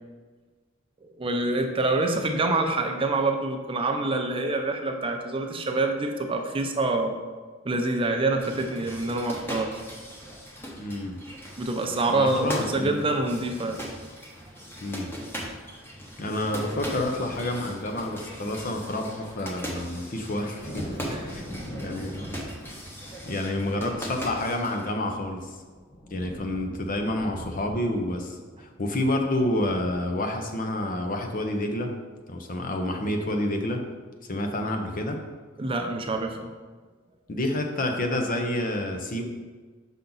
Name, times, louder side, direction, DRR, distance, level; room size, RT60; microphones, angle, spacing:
voice 1, 1.2-7.2 7.6-9.8 11.6-13.8 21.1-21.3 35.6-36.5, right 2 dB, 25° right, 4 dB, 0.6 m, -26 dB
sound 1, 8.4-24.9, equal, 10° left, 0.9 m, -39 dB
voice 2, 10.7-11.2 12.1-13.0 14.8-15.1 16.2-21.5 21.8-22.4 23.2-25.5 26.1-31.9 32.3-33.8 34.3-35.2 37.3-39.2, left 1 dB, 45° left, 4 dB, 0.7 m, -29 dB
sound 2, 20.6-31.9, equal, 80° left, 1.8 m, -43 dB
5.8 x 5.4 x 3.9 m, 1.4 s
head